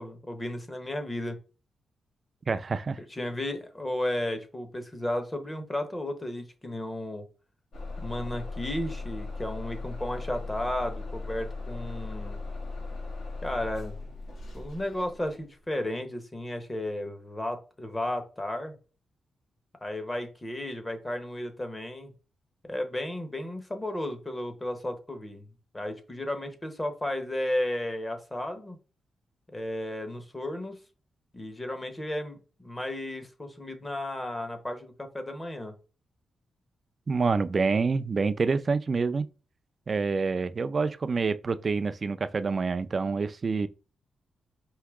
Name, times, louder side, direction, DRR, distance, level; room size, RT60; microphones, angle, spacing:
voice 1, 0.0-1.4 3.1-7.3 8.0-12.4 13.4-14.0 14.5-18.7 19.8-22.1 22.7-25.5 25.7-28.8 29.5-30.8 31.3-35.7, left 1 dB, 15° left, 0.9 m, -34 dB
voice 2, 2.5-3.0 37.1-39.3 39.9-43.7, right 4 dB, 35° right, 0.3 m, -27 dB
Bus / Engine starting, 7.7-15.5, left 3 dB, 70° left, 1.6 m, -38 dB
4.7 x 2.8 x 3.5 m
wide cardioid pair, 135°, 0 cm